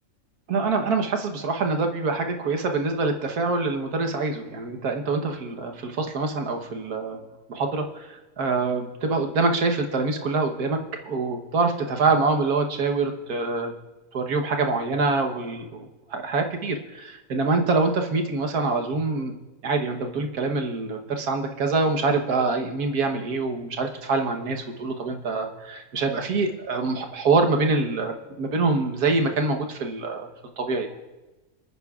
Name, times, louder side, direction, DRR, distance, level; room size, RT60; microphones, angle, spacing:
voice 1, 0.5-7.2 7.5-13.7 14.1-15.9 16.1-19.3 19.6-30.3 30.6-31.0, right 3 dB, 90° right, 3 dB, 1.7 m, -25 dB
25.0 x 9.7 x 2.4 m, 1.1 s
omnidirectional pair, 1.6 m